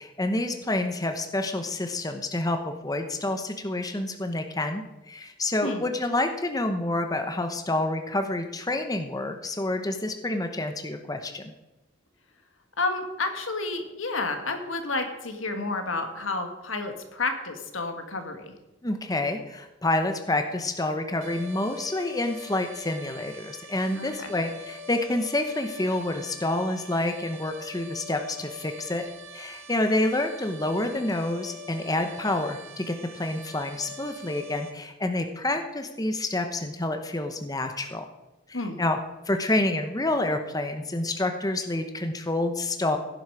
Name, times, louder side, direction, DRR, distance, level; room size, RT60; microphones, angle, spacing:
voice 1, 0.0-11.5 18.8-29.0 29.3-38.0 38.5-39.0 39.3-43.0, left 2 dB, 20° left, 6 dB, 0.9 m, -28 dB
voice 2, 12.8-18.5 23.9-24.3 38.5-38.8, left 3 dB, 85° left, 6 dB, 2.0 m, -30 dB
sound 1, 21.2-34.7, left 1 dB, 90° right, 1.5 m, -44 dB
16.5 x 10.0 x 4.8 m, 1.0 s
head